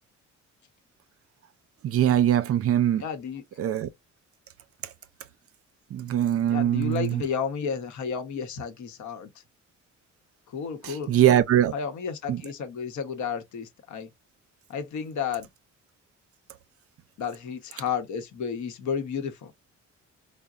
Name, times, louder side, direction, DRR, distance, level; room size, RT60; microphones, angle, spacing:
voice 1, 1.8-3.0 3.6-3.9 5.9-7.2 10.8-11.7 12.3-12.4, right 11 dB, 50° right, 0.5 m, -22 dB
voice 2, 3.0-3.4 6.5-9.3 10.5-11.1 11.7-14.1 14.7-15.5 17.2-19.5, left 6 dB, 75° left, 0.9 m, -32 dB
3.7 x 2.0 x 2.3 m
cardioid pair, 90°, 30 cm